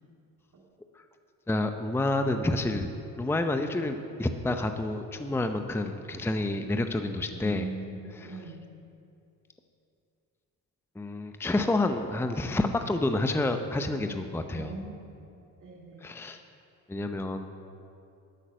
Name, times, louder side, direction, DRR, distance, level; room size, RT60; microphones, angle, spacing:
voice 1, 1.5-2.9 3.2-7.7 8.2-8.4 11.0-14.7 16.0-16.4 16.9-17.5, left 2 dB, 5° left, 7 dB, 0.7 m, -29 dB
voice 2, 7.3-8.6 14.5-15.1 15.6-16.1, right 3 dB, 45° right, -3 dB, 2.3 m, -41 dB
12.0 x 8.4 x 6.4 m, 2.6 s
supercardioid pair, 65°, 42 cm